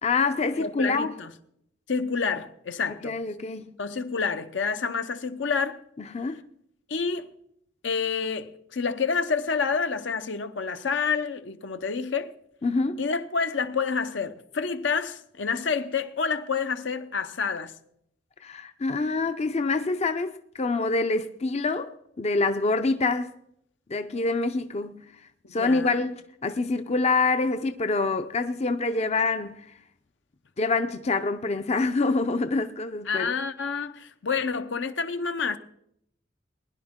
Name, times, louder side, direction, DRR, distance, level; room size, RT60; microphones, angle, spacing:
voice 1, 0.0-1.1 3.0-3.7 6.0-6.4 12.6-13.1 18.4-23.3 23.9-25.0 25.5-29.7 30.6-33.3, left 3 dB, 35° left, 0.5 m, -26 dB
voice 2, 0.5-1.3 1.9-3.2 3.8-5.8 6.9-7.3 7.8-12.3 13.0-17.7 25.4-26.0 33.1-35.6, left 5 dB, 70° left, 0.8 m, -28 dB
20.5 x 10.5 x 3.7 m
head